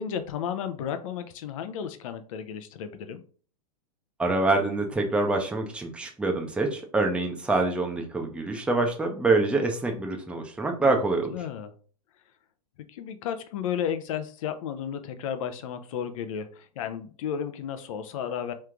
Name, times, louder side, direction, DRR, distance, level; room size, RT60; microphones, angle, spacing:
voice 1, 0.0-3.2 10.8-11.0 11.3-11.7 12.9-18.5, left 8 dB, 55° left, 9 dB, 0.7 m, -33 dB
voice 2, 4.2-11.3, right 3 dB, 5° right, 2 dB, 0.7 m, -25 dB
3.2 x 3.2 x 3.7 m, 0.41 s
hypercardioid pair, 110°, 21 cm